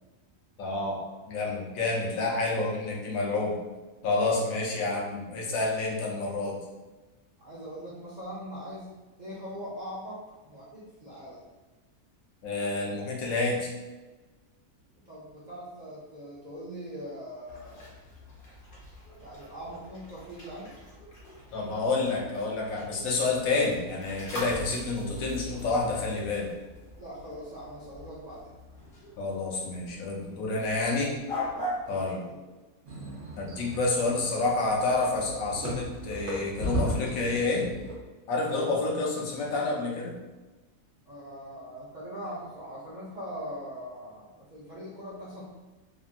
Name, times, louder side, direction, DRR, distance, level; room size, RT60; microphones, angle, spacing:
voice 1, 0.6-1.0 1.3-3.5 4.0-6.6 12.4-13.7 21.5-26.5 29.2-31.1 31.9-32.2 33.4-37.6 38.3-40.2, left 3 dB, 70° left, -2 dB, 1.0 m, -29 dB
voice 2, 7.4-8.9 9.2-11.4 14.9-18.0 19.2-20.7 27.0-28.5 31.9-32.6 41.1-45.4, equal, 75° right, -7 dB, 0.4 m, -41 dB
sound 1, 17.5-31.9, left 1 dB, 40° left, 0.9 m, -42 dB
sound 2, 32.9-38.0, equal, 55° right, 0.9 m, -35 dB
2.9 x 2.5 x 2.4 m, 1.2 s
omnidirectional pair, 1.6 m